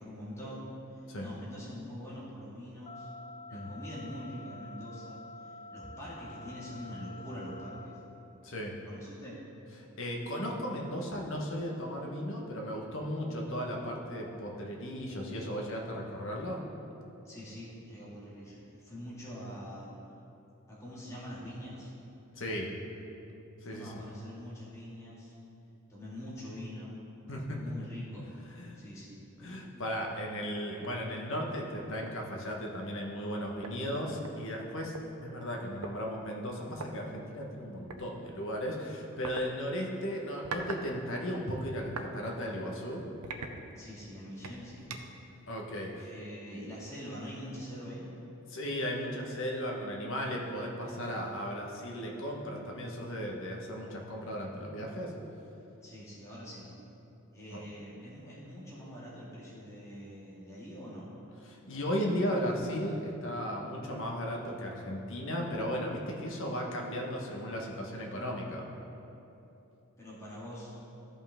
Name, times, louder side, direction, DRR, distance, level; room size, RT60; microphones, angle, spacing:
voice 1, 0.0-3.1 3.5-8.0 8.9-9.4 17.2-19.9 20.7-21.9 23.6-25.3 25.9-27.0 27.5-28.3 28.7-29.3 43.8-44.8 45.9-48.1 55.8-56.7 57.3-61.1 70.0-70.7, equal, 15° left, -8 dB, 2.0 m, -44 dB
sound 1, 2.9-7.9, left 2 dB, 30° left, 0.4 m, -48 dB
voice 2, 8.4-8.7 10.0-16.6 22.3-22.7 23.6-24.0 27.3-27.9 28.5-28.8 29.4-34.9 35.2-43.0 45.5-46.1 48.5-55.1 57.5-57.6 61.4-68.7, equal, 60° left, -1 dB, 1.3 m, -36 dB
sound 2, 30.8-31.0 31.5-31.6 32.0-32.3 33.3-33.4 33.6-35.0 35.8-36.0 36.7-36.9 37.9-38.1 39.2-39.4 40.2-40.9 41.2-42.1 42.6-42.7 43.2-44.0 44.4-45.2, right 4 dB, 85° right, 0.7 m, -42 dB
14.0 x 5.5 x 3.6 m, 2.9 s
head